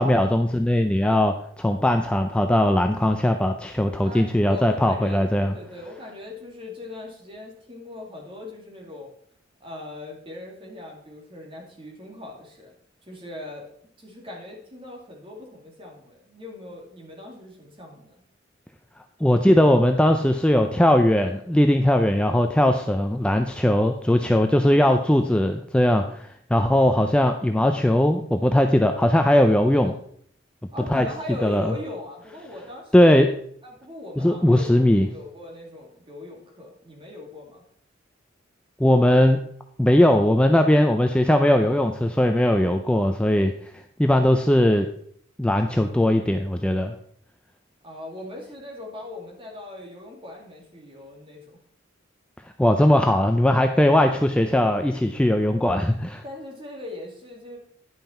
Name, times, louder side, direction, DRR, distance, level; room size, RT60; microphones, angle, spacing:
voice 1, 0.0-5.6 19.2-29.9 30.9-31.1 31.4-31.7 32.9-33.3 34.2-35.1 38.8-39.4 39.8-43.5 44.0-44.9 45.4-46.9 52.6-56.2, left 1 dB, 5° left, 5 dB, 0.4 m, -19 dB
voice 2, 4.0-5.2 5.5-9.1 9.6-12.7 13.1-13.6 14.0-18.1 30.7-33.1 33.6-37.6 47.8-51.6 56.2-57.6, left 2 dB, 25° right, -1 dB, 2.1 m, -39 dB
10.5 x 5.7 x 4.3 m, 0.64 s
head